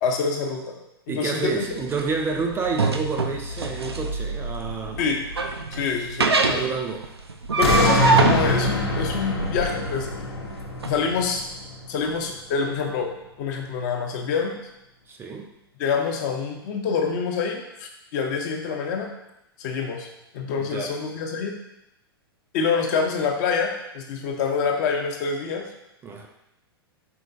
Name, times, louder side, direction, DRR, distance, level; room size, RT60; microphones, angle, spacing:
voice 1, 0.0-0.7 1.1-1.6 5.0-5.2 5.7-6.6 7.6-10.1 10.8-11.4 11.9-13.1 13.4-14.6 15.8-19.1 19.6-20.1 20.3-21.5 22.5-25.6, left 5 dB, 45° left, 3 dB, 0.7 m, -26 dB
voice 2, 1.1-5.0 6.5-7.1 15.1-15.5 20.6-21.0 26.0-26.3, right 4 dB, 15° right, 2 dB, 0.4 m, -29 dB
sound 1, 1.4-10.9, right 4 dB, 85° right, 0.4 m, -25 dB
sound 2, 7.6-12.7 13.2-13.3, left 2 dB, 75° left, 0.8 m, -25 dB
4.5 x 3.6 x 2.6 m, 0.86 s
figure-of-eight pair, 100°, 13 cm